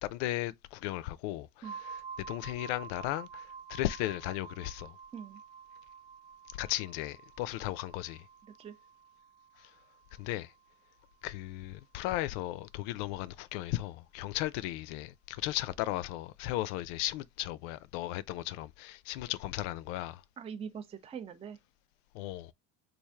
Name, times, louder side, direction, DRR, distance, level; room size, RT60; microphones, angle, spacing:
voice 1, 0.0-5.0 6.6-8.3 10.2-10.5 11.2-20.2 22.1-22.5, left 15 dB, 75° left, 0.5 m, -36 dB
sound 1, 1.6-11.3, right 6 dB, 80° right, 0.9 m, -49 dB
voice 2, 20.4-21.6, right 7 dB, 15° right, 0.5 m, -42 dB
3.2 x 2.5 x 3.5 m
supercardioid pair, 110°, 38 cm